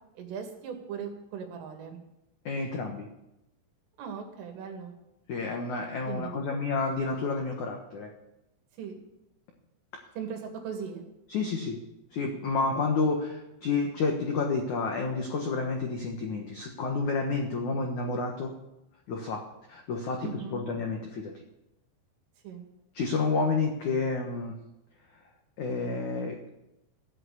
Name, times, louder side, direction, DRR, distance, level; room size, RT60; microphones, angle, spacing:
voice 1, 0.2-2.0 4.0-4.9 6.1-6.6 8.8-9.0 10.2-11.1 20.2-20.6 22.4-22.7, right 6 dB, 80° right, 3 dB, 4.7 m, -38 dB
voice 2, 2.5-3.1 5.3-8.1 11.3-11.8 12.1-18.5 19.1-19.4 19.7-21.3 22.9-24.6 25.6-26.5, left 4 dB, 75° left, 1 dB, 1.7 m, -30 dB
16.0 x 8.8 x 8.5 m, 0.89 s
omnidirectional pair, 5.7 m